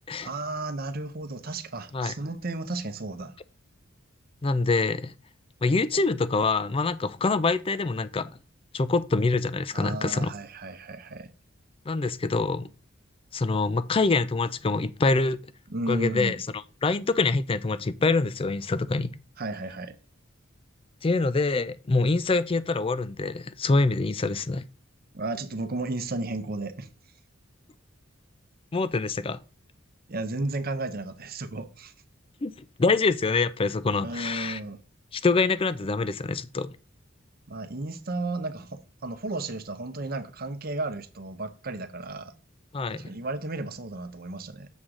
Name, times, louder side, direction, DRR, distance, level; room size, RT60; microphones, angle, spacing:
voice 1, 0.2-3.4 9.7-11.3 15.7-16.4 19.4-19.9 25.1-26.9 30.1-31.9 34.0-34.8 37.5-42.3 42.9-44.7, right 2 dB, 45° right, 0.8 m, -33 dB
voice 2, 4.4-5.1 5.6-8.3 8.7-10.3 11.9-12.7 13.3-15.4 15.9-16.4 16.8-19.1 21.0-24.6 28.7-29.4 32.4-32.5 32.8-34.6 35.1-36.7 42.7-43.1, left 3 dB, 25° left, 0.4 m, -25 dB
7.2 x 3.8 x 6.3 m
head